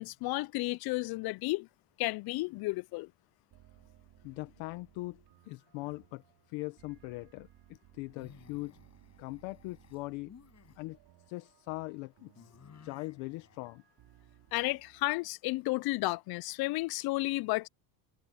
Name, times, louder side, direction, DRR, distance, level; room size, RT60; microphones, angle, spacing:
voice 1, 0.0-1.7 2.0-3.1 14.5-17.7, left 21 dB, 55° left, 0.5 m, -32 dB
sound 1, 3.5-15.1, right 14 dB, 60° right, 4.0 m, -62 dB
voice 2, 4.2-6.2 6.5-8.7 9.2-10.3 10.8-11.0 11.3-12.5 12.8-13.8, left 22 dB, 85° left, 1.3 m, -41 dB
sound 2, 4.5-5.1 5.4-5.9 8.0-10.8 12.4-13.7, left 7 dB, 35° left, 6.0 m, -57 dB
cardioid pair, 120°, 47 cm